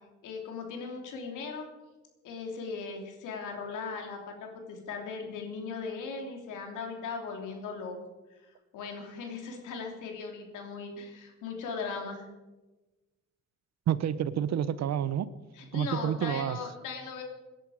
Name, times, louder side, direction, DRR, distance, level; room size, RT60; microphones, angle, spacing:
voice 1, 0.2-1.7 2.2-7.9 8.7-12.3 15.5-17.2, left 4 dB, 85° left, 2 dB, 3.1 m, -38 dB
voice 2, 13.9-15.3 15.7-16.6, right 9 dB, 60° right, 16 dB, 0.8 m, -29 dB
18.5 x 11.0 x 5.0 m, 1.1 s
cardioid pair, 90°, 30 cm